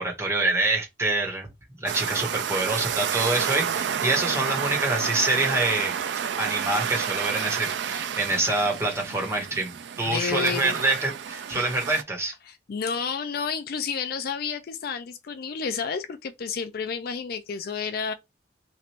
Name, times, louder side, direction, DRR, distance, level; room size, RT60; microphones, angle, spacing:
voice 1, 0.0-1.5 1.8-6.0 6.4-12.3, right 2 dB, 15° right, 1.3 m, -26 dB
sound 1, 1.9-12.0, right 8 dB, 75° right, 0.4 m, -30 dB
voice 2, 10.1-10.8 11.5-11.7 12.5-18.1, left 6 dB, 55° left, 0.4 m, -31 dB
3.1 x 2.5 x 4.2 m
head